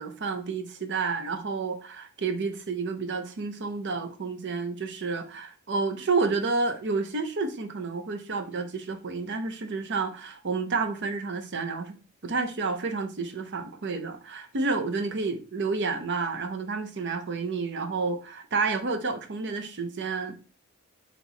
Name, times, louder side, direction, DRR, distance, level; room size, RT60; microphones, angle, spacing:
voice 1, 0.0-20.3, right 4 dB, 55° right, 0.7 m, -30 dB
4.4 x 3.0 x 4.0 m
head